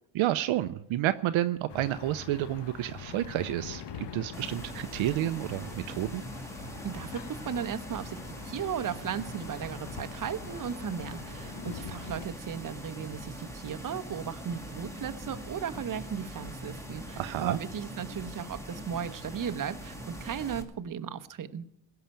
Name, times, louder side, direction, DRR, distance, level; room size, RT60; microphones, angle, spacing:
voice 1, 0.1-6.2 17.2-17.6, right 13 dB, 70° right, 11 dB, 0.7 m, -30 dB
sound 1, 1.7-12.3, left 7 dB, 60° left, 1.1 m, -44 dB
sound 2, 4.3-20.6, equal, 5° left, 2.0 m, -42 dB
voice 2, 6.8-21.7, right 8 dB, 40° right, 9 dB, 0.9 m, -36 dB
17.0 x 5.8 x 8.9 m, 0.83 s
cardioid pair, 90°, 49 cm